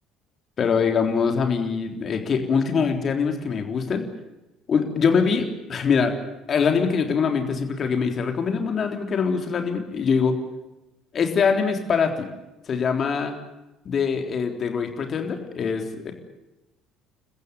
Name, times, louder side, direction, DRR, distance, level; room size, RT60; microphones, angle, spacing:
voice 1, 0.6-4.1 4.7-6.2 6.5-10.4 11.1-12.3 12.7-13.3 13.9-16.1, left 5 dB, 40° left, 5 dB, 3.7 m, -23 dB
29.5 x 15.0 x 9.6 m, 0.97 s
figure-of-eight pair, 60°, 0 cm